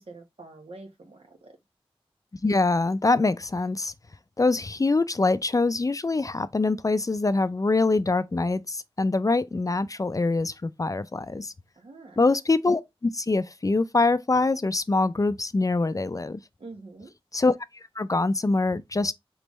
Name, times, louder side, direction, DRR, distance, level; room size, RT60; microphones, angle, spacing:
voice 1, 0.0-1.6 11.8-12.2 16.6-17.1, right 3 dB, 75° right, 1.2 m, -45 dB
voice 2, 2.4-3.9 4.4-11.5 12.2-16.4 17.3-17.5 18.0-19.1, left 3 dB, 35° left, 0.4 m, -24 dB
3.9 x 3.4 x 3.1 m
wide cardioid pair, 45°, 10 cm